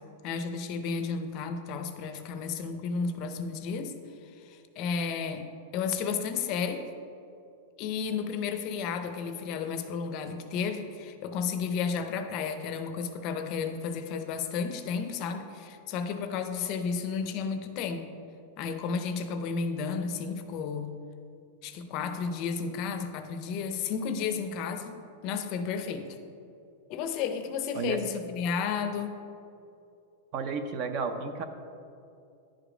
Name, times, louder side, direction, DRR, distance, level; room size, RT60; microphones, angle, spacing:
voice 1, 0.2-3.9 4.4-5.5 5.7-6.8 7.8-18.1 18.6-20.9 21.6-25.0 25.2-26.1 26.9-29.2, left 5 dB, 35° left, 7 dB, 0.5 m, -32 dB
voice 2, 30.3-31.4, right 5 dB, 35° right, 8 dB, 0.5 m, -32 dB
10.5 x 5.0 x 5.0 m, 2.6 s
supercardioid pair, 175°, 0 cm